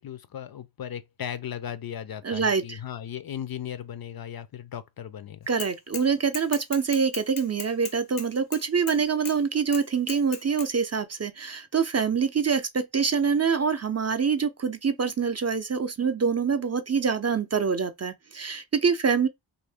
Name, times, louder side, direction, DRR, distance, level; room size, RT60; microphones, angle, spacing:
voice 1, 0.0-5.5, left 9 dB, 50° left, 0.5 m, -37 dB
voice 2, 2.2-2.8 5.5-19.3, right 6 dB, 35° right, 0.5 m, -25 dB
Bicycle / Mechanisms, 5.6-6.1 6.3-9.0 9.3-9.4 9.7-10.7, left 7 dB, 85° left, 0.9 m, -37 dB
2.6 x 2.6 x 3.4 m
cardioid pair, 55°, 50 cm